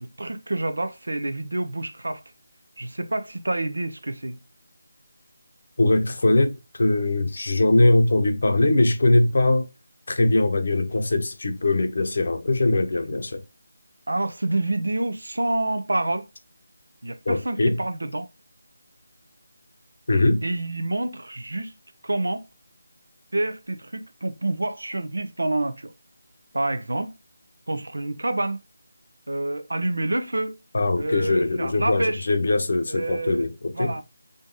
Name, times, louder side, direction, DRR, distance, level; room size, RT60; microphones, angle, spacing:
voice 1, 0.0-2.2 2.8-4.4 14.1-16.3 17.0-18.3 20.4-21.7 22.0-22.4 23.3-25.9 26.5-27.1 27.7-28.6 29.3-30.6 31.0-32.2 32.9-33.5 33.7-34.0, right 2 dB, 75° right, 0.7 m, -27 dB
voice 2, 5.8-9.7 10.1-13.4 17.3-17.8 20.1-20.4 30.7-33.9, left 2 dB, 60° left, 0.8 m, -21 dB
3.9 x 3.6 x 3.8 m
figure-of-eight pair, 160°, 0 cm